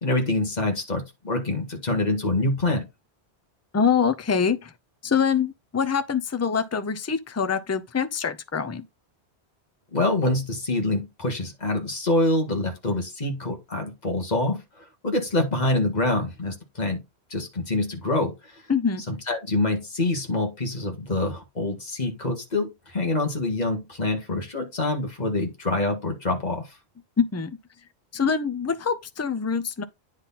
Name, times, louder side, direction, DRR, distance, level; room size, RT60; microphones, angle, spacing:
voice 1, 0.0-2.9 9.9-17.0 17.3-18.6 19.1-26.7, left 2 dB, 40° left, 1.9 m, -26 dB
voice 2, 3.7-4.7 5.0-8.8 18.7-19.0 27.2-27.6 28.1-29.8, left 6 dB, 20° left, 0.4 m, -24 dB
9.7 x 4.0 x 4.1 m
omnidirectional pair, 1.1 m